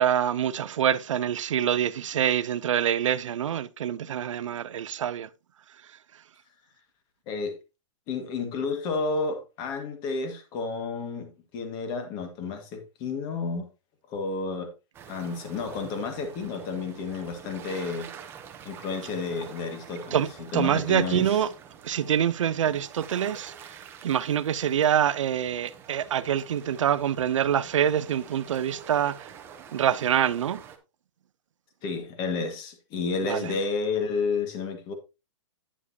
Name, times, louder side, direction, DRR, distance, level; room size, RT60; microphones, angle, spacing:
voice 1, 0.0-5.3 20.1-21.5 21.8-23.8 24.0-29.3 29.7-30.6 33.2-33.5, right 9 dB, 75° right, 0.7 m, -25 dB
voice 2, 8.1-13.7 14.1-14.7 15.1-18.1 18.7-21.4 31.8-34.9, left 4 dB, 25° left, 1.8 m, -31 dB
sound 1, 14.9-30.8, right 8 dB, 15° right, 0.9 m, -46 dB
9.8 x 7.3 x 2.8 m
hypercardioid pair, 160°, 16 cm